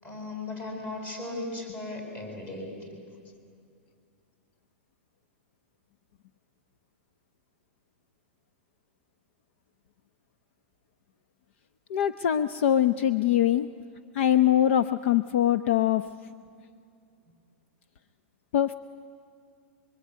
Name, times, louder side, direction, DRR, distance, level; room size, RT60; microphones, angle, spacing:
voice 1, 0.0-3.0, left 2 dB, 25° left, 2 dB, 7.6 m, -37 dB
voice 2, 11.9-13.7 14.1-16.1 18.5-18.7, left 11 dB, 60° left, 12 dB, 0.8 m, -23 dB
25.5 x 24.5 x 9.6 m, 2.4 s
hypercardioid pair, 145°, 7 cm